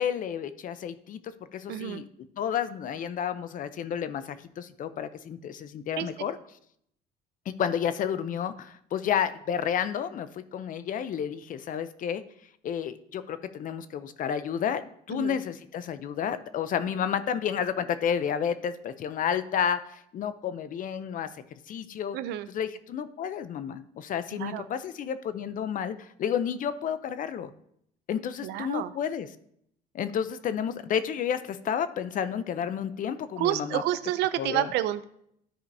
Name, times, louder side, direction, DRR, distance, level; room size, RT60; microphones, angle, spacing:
voice 1, 0.0-2.0 2.4-6.4 7.5-12.2 12.6-21.3 21.7-22.2 22.5-27.5 28.1-29.3 29.9-33.8 34.4-34.7, left 8 dB, 50° left, 12 dB, 0.6 m, -31 dB
voice 2, 1.7-2.0 6.0-6.1 15.1-15.4 22.1-22.5 24.3-24.6 28.4-28.9 33.4-35.0, right 13 dB, 80° right, 13 dB, 0.5 m, -29 dB
13.0 x 5.0 x 2.7 m, 0.70 s
cardioid pair, 110°, 17 cm